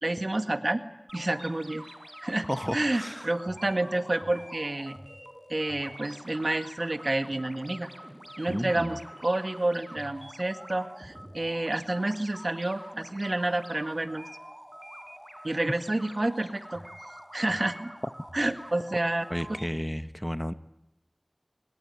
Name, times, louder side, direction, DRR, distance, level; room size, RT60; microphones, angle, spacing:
voice 1, 0.0-0.8 1.1-1.9 2.2-5.0 5.5-7.9 8.4-14.2 15.4-16.8 17.3-17.9 18.3-19.2, right 2 dB, 70° right, 9 dB, 1.9 m, -29 dB
sound 1, 1.1-19.7, equal, 25° right, 5.3 m, -46 dB
voice 2, 2.5-3.3 8.5-8.9 19.3-20.5, equal, 5° left, 12 dB, 1.1 m, -32 dB
26.5 x 23.0 x 9.7 m, 0.88 s
wide cardioid pair, 40°, 0 cm